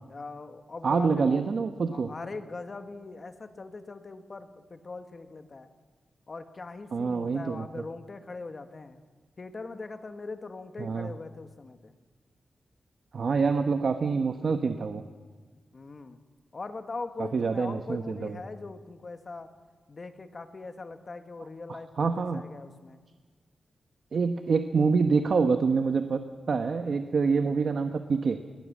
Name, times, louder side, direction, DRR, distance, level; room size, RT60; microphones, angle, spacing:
voice 1, 0.1-1.6 1.9-5.7 6.3-9.0 9.4-11.9 15.7-16.2 16.5-19.5 19.9-23.0, left 3 dB, 40° left, 8 dB, 1.6 m, -41 dB
voice 2, 0.8-2.1 6.9-7.8 10.8-11.1 13.1-15.0 17.2-18.4 21.7-22.4 24.1-26.2 26.5-28.4, right 5 dB, 60° right, 7 dB, 1.0 m, -26 dB
21.0 x 18.0 x 7.4 m, 1.5 s
wide cardioid pair, 110°, 0 cm